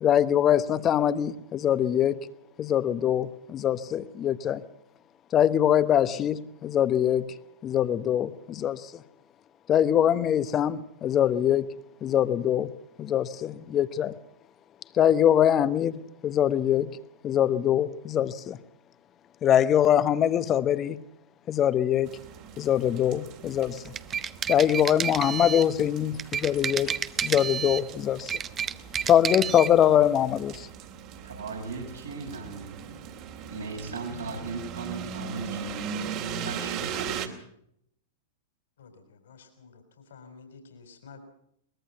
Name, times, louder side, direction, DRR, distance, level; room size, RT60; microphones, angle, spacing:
voice 1, 0.0-2.2 2.6-4.6 5.3-7.3 7.6-8.8 9.7-11.7 12.0-12.7 13.0-14.1 14.9-17.0 17.2-18.6 19.4-21.0 21.5-22.2 22.6-23.9 24.5-26.9 27.2-28.4 29.1-30.7, left 10 dB, 30° left, 1.0 m, -23 dB
sound 1, 22.0-37.3, right 7 dB, 45° right, 2.6 m, -39 dB
sound 2, 23.8-25.7 26.2-27.9 28.2-29.7, right 8 dB, 25° right, 0.7 m, -30 dB
voice 2, 31.2-32.8 33.5-36.0 36.4-37.3, right 3 dB, 80° right, 6.7 m, -37 dB
voice 3, 38.8-39.8 40.1-41.3, left 4 dB, 65° left, 4.0 m, -50 dB
23.0 x 20.5 x 5.7 m
figure-of-eight pair, 100°, 0 cm